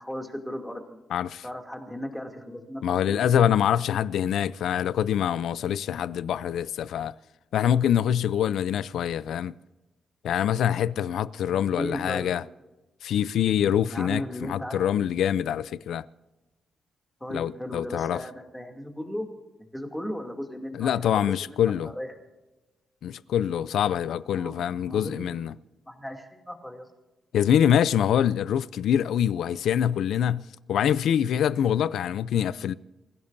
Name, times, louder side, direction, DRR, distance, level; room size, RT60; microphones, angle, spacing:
voice 1, 0.0-1.0 1.4-2.8 3.1-3.2 11.5-12.3 13.9-14.9 17.2-19.3 19.7-22.1 24.3-25.4 25.9-26.9, left 1 dB, 5° left, 2.6 m, -36 dB
voice 2, 1.1-1.4 2.8-7.1 7.5-9.5 10.2-12.4 13.0-16.0 17.3-18.2 20.7-21.9 23.0-25.5 27.3-32.7, left 9 dB, 90° left, 0.5 m, -25 dB
28.0 x 16.0 x 2.7 m
wide cardioid pair, 135°, 0 cm